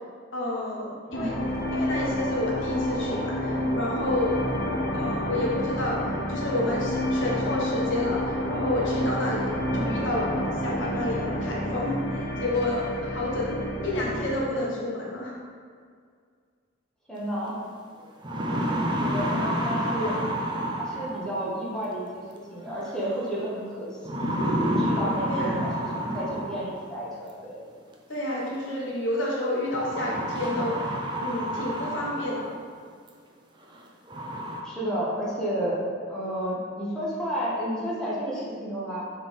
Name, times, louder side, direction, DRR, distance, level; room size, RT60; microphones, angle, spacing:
voice 1, 0.3-1.3 1.7-4.4 4.9-6.0 6.3-13.5 13.8-15.4 25.3-25.5 28.1-30.9 31.2-32.5, left 1 dB, 70° left, -4 dB, 1.2 m, -30 dB
sound 1, 1.1-14.5, left 1 dB, 50° left, 0.8 m, -29 dB
voice 2, 17.1-17.6 19.0-20.2 20.8-27.6 34.6-35.8 36.1-39.0, equal, 5° left, -8 dB, 1.3 m, -32 dB
sound 2, 17.5-17.6 18.0-21.4 22.8-23.3 24.0-26.8 28.1-28.2 29.7-32.6 33.1-33.2 33.7-33.8 34.1-34.6, equal, 25° right, 0.6 m, -29 dB
6.6 x 3.5 x 4.3 m, 2.1 s
head